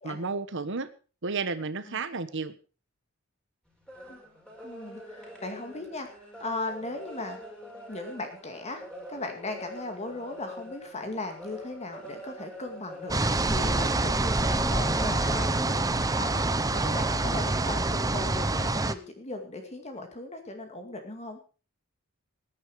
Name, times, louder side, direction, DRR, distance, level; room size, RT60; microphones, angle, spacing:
voice 1, 0.0-0.9 1.2-2.5, right 4 dB, 60° right, 13 dB, 1.2 m, -32 dB
sound 1, 3.7-18.7, equal, 5° left, 4.6 m, -45 dB
voice 2, 4.6-7.4 7.9-8.8 9.1-21.4, left 2 dB, 30° left, 5 dB, 2.2 m, -38 dB
sound 2, 13.1-18.9, right 2 dB, 15° right, 0.8 m, -26 dB
17.5 x 10.0 x 4.9 m, 0.36 s
head